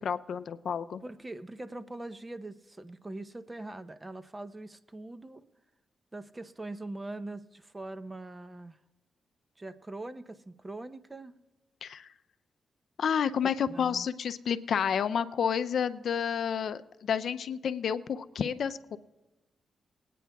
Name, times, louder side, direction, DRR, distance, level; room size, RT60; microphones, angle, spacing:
voice 1, 0.0-1.0 11.8-12.1 13.0-19.0, left 7 dB, 70° left, 12 dB, 0.4 m, -30 dB
voice 2, 1.0-5.4 6.1-8.8 9.6-11.3 13.4-14.1, right 2 dB, 25° right, 12 dB, 0.7 m, -42 dB
21.0 x 9.2 x 2.3 m, 1.1 s
cardioid pair, 60°, 0 cm